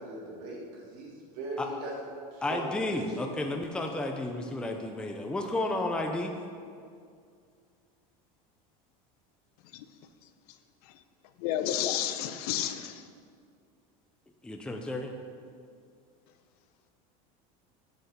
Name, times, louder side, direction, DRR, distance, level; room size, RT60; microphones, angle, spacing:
voice 1, 0.0-1.9 2.3-3.2, right 2 dB, 85° right, -3 dB, 3.1 m, -39 dB
voice 2, 2.4-6.3 14.4-15.1, left 2 dB, 5° left, 2 dB, 0.6 m, -32 dB
voice 3, 11.4-13.0, left 11 dB, 85° left, 9 dB, 0.8 m, -31 dB
8.1 x 8.0 x 6.7 m, 2.2 s
cardioid pair, 155°, 19 cm